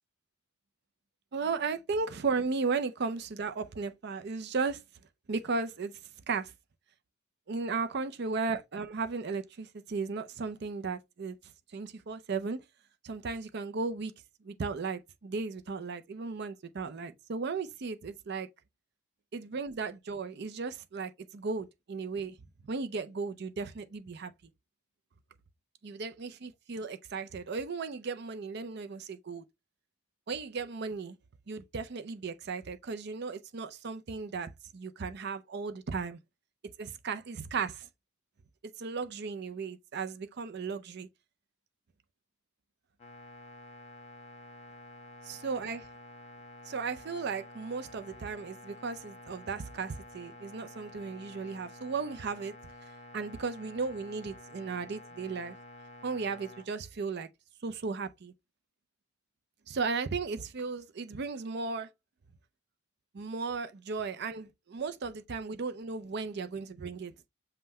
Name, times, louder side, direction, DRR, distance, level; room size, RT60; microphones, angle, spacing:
voice 1, 1.3-4.8 5.3-5.9 6.3-6.5 7.5-11.4 11.7-12.6 13.0-14.1 14.4-18.5 19.3-22.4 22.6-24.3 25.8-29.4 30.3-31.2 31.5-36.2 36.8-37.9 38.8-41.1 45.3-45.9 46.7-52.5 53.1-55.6 56.0-57.3 57.6-58.3 59.7-61.9 63.1-67.1, right 4 dB, 50° right, 0.5 m, -35 dB
sound 1, 43.0-56.6, left 2 dB, 30° left, 1.2 m, -50 dB
5.5 x 2.2 x 4.0 m
head